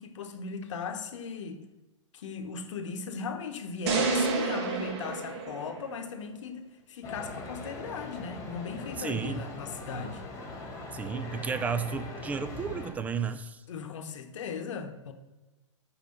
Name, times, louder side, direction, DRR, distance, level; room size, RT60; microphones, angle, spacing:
voice 1, 0.0-1.6 2.1-10.2 13.7-15.1, left 5 dB, 70° left, 7 dB, 0.9 m, -38 dB
sound 1, 3.9-6.2, right 4 dB, 55° right, 1.2 m, -30 dB
sound 2, 7.0-12.9, left 2 dB, 20° left, 1.5 m, -41 dB
voice 2, 9.0-9.5 10.9-13.6, right 6 dB, 10° right, 11 dB, 0.3 m, -33 dB
5.7 x 5.0 x 6.4 m, 1.1 s
hypercardioid pair, 130°, 16 cm